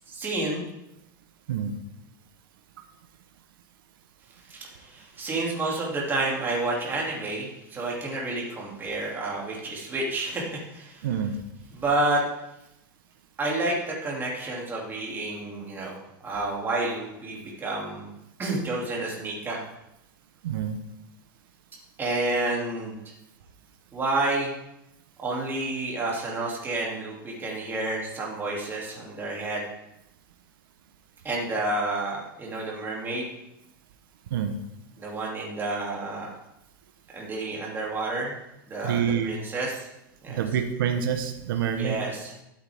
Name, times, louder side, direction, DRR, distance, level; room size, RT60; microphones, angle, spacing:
voice 1, 0.1-0.6 4.5-11.1 11.7-12.2 13.4-16.0 16.2-18.1 18.4-19.6 22.0-22.9 23.9-24.5 25.2-29.7 31.2-33.3 35.0-36.3 37.1-38.3 38.7-39.9 40.2-40.4 41.8-42.4, right 2 dB, 20° right, -3 dB, 2.7 m, -30 dB
voice 2, 11.0-11.4 20.4-20.8 34.3-34.6 38.8-39.4 40.3-42.0, right 8 dB, 85° right, 6 dB, 1.0 m, -27 dB
12.0 x 8.1 x 3.5 m, 0.88 s
supercardioid pair, 145°, 11 cm